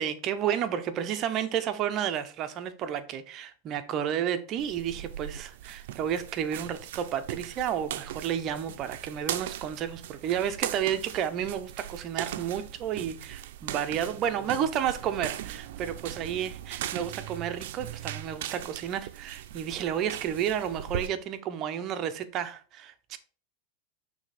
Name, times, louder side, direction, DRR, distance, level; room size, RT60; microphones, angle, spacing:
voice 1, 0.0-23.2, right 9 dB, 35° right, 0.7 m, -31 dB
sound 1, 4.6-21.1, right 12 dB, 70° right, 0.5 m, -39 dB
6.3 x 3.3 x 4.9 m
supercardioid pair, 150°, 0 cm